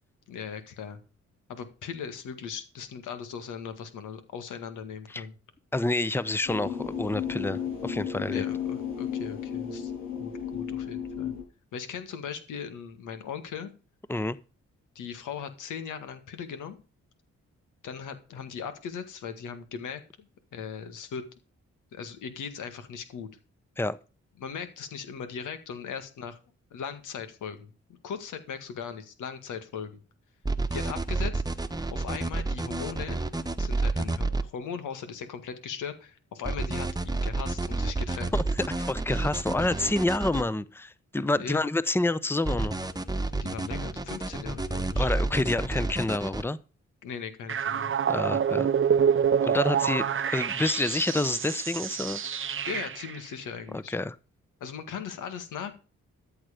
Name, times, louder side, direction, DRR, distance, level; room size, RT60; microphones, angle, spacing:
voice 1, 0.3-1.0 1.5-5.3 8.3-9.9 10.2-11.4 11.7-13.7 15.0-16.8 17.8-21.2 21.9-23.3 24.4-26.4 26.7-27.7 28.0-29.9 30.7-31.4 31.9-33.2 33.6-38.3 41.4-41.6 43.4-45.1 47.0-47.9 52.6-54.0 54.6-55.7, left 7 dB, 90° left, 1.9 m, -38 dB
voice 2, 5.7-8.4 14.1-14.4 23.8-24.0 38.3-42.8 45.0-46.6 48.1-48.7 49.4-52.2 53.7-54.2, left 2 dB, 10° left, 0.8 m, -28 dB
sound 1, 6.5-11.4, left 8 dB, 75° left, 7.3 m, -33 dB
sound 2, 30.4-34.4 36.4-40.4 42.4-46.4, right 3 dB, 15° right, 1.2 m, -29 dB
sound 3, 47.5-53.2, right 7 dB, 45° right, 0.7 m, -27 dB
13.5 x 7.8 x 5.1 m
cardioid pair, 60°, 30 cm